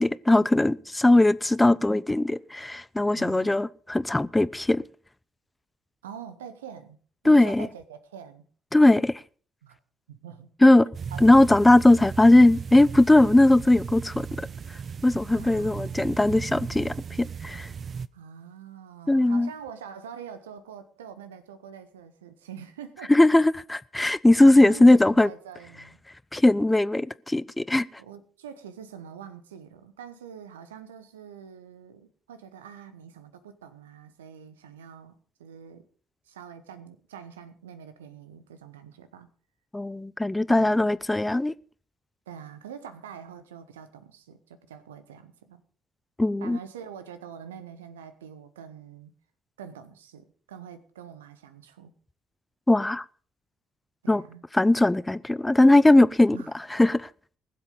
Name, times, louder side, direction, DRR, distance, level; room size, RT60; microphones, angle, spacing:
voice 1, 0.0-4.8 7.2-7.7 8.7-9.2 10.6-10.9 11.2-14.5 15.0-17.7 19.1-19.5 23.1-25.3 26.3-27.9 39.7-41.5 46.2-46.6 52.7-53.0 54.1-54.2 54.5-56.4 56.7-57.1, left 2 dB, 10° left, 0.5 m, -19 dB
voice 2, 3.1-3.6 6.0-7.0 7.2-8.4 9.6-9.8 10.1-10.5 11.1-11.2 15.3-16.2 18.1-23.1 24.4-26.0 28.0-35.9 36.3-39.3 40.5-40.9 42.3-45.6 46.4-49.1 49.6-51.9 54.0-54.4 56.3-56.5, right 8 dB, 75° right, 1.0 m, -44 dB
sound 1, 10.9-18.1, right 6 dB, 40° right, 0.5 m, -36 dB
20.0 x 7.7 x 5.3 m
figure-of-eight pair, 50°, 0 cm